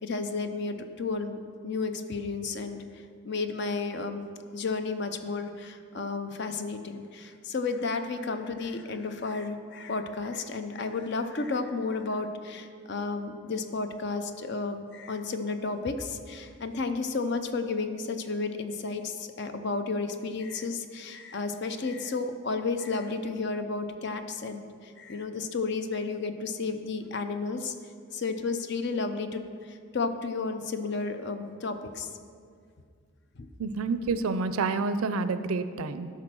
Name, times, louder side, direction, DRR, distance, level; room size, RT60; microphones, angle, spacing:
voice 1, 0.0-1.4 1.6-2.8 3.2-27.7 28.1-32.1 33.4-33.5, left 4 dB, 50° left, 8 dB, 0.6 m, -32 dB
voice 2, 33.6-36.1, right 4 dB, 80° right, 12 dB, 0.5 m, -28 dB
12.5 x 4.2 x 6.1 m, 2.2 s
head